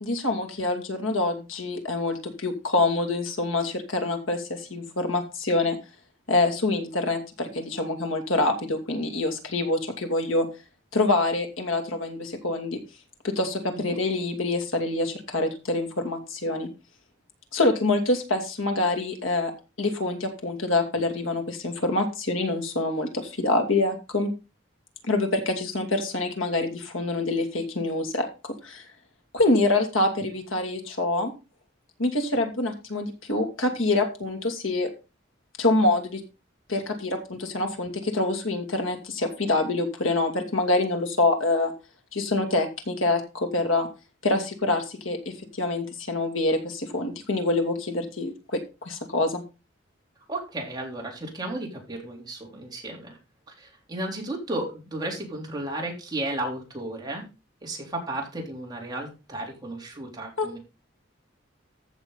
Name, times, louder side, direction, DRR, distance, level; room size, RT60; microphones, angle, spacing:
voice 1, 0.0-5.8 6.3-10.5 10.9-12.8 13.2-16.7 17.5-19.5 19.8-24.3 25.1-28.8 29.3-31.3 32.0-34.9 35.6-36.2 36.7-41.7 42.1-43.9 44.2-49.4 60.4-60.6, left 2 dB, 90° left, 5 dB, 2.8 m, -26 dB
voice 2, 50.3-53.2 53.6-57.2 57.6-60.6, right 1 dB, 20° right, -1 dB, 3.7 m, -34 dB
14.5 x 6.6 x 4.1 m, 0.29 s
head